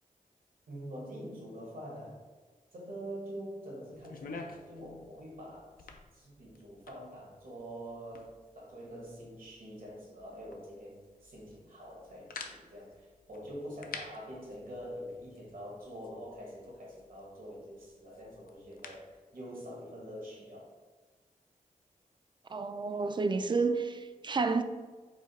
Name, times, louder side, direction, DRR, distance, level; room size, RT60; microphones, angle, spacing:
voice 1, 0.7-2.2 2.7-5.9 6.1-20.7, equal, 75° right, 1.5 m, -45 dB
sound 1, 3.9-19.1, left 4 dB, 85° left, 0.5 m, -51 dB
voice 2, 22.5-24.6, right 4 dB, 35° right, 0.3 m, -30 dB
4.9 x 2.2 x 4.1 m
wide cardioid pair, 75°, 15 cm